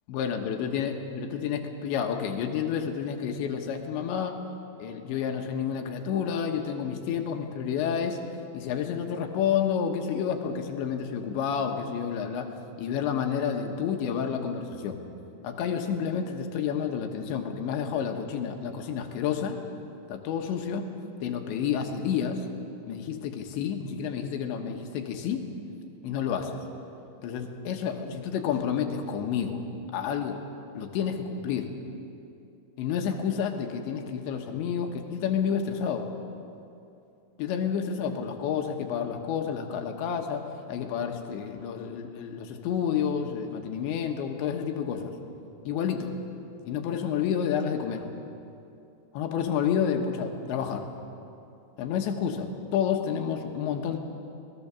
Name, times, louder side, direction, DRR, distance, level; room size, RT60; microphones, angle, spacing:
voice 1, 0.1-4.4 4.8-8.2 8.5-12.5 12.8-15.0 15.4-19.6 20.1-20.9 21.2-22.5 22.9-25.4 26.0-26.6 27.2-29.6 29.9-30.4 30.7-31.7 32.8-36.1 37.4-40.4 40.7-45.1 45.6-46.1 46.7-48.1 49.1-50.9 51.8-54.0, left 7 dB, 70° left, 4 dB, 3.3 m, -30 dB
26.5 x 19.5 x 7.1 m, 2.7 s
omnidirectional pair, 5.8 m